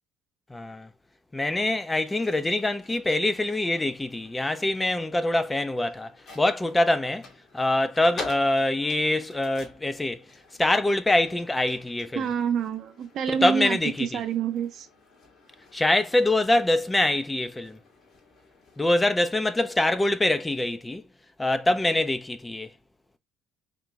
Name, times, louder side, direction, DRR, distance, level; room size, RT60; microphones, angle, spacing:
voice 1, 0.5-0.9 1.3-7.3 7.5-10.2 10.6-12.3 13.3-14.2 15.7-17.8 18.8-21.0 21.4-22.7, left 1 dB, 15° left, 0.6 m, -24 dB
sound 1, 1.8-18.9, left 3 dB, 55° left, 1.8 m, -48 dB
voice 2, 12.2-14.9, right 7 dB, 60° right, 0.7 m, -27 dB
3.7 x 2.9 x 3.4 m
hypercardioid pair, 65°, 0 cm